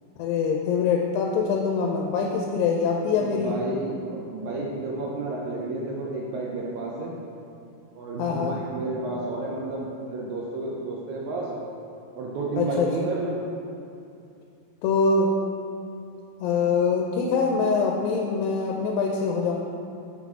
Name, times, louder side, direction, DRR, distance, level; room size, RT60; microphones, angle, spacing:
voice 1, 0.2-3.5 8.2-8.6 12.6-12.9 14.8-15.3 16.4-19.6, left 5 dB, 85° left, 1 dB, 2.3 m, -24 dB
voice 2, 3.1-7.2 7.9-11.6 12.1-13.5, right 2 dB, 80° right, -3 dB, 1.7 m, -31 dB
5.9 x 5.9 x 3.6 m, 2.7 s
omnidirectional pair, 4.0 m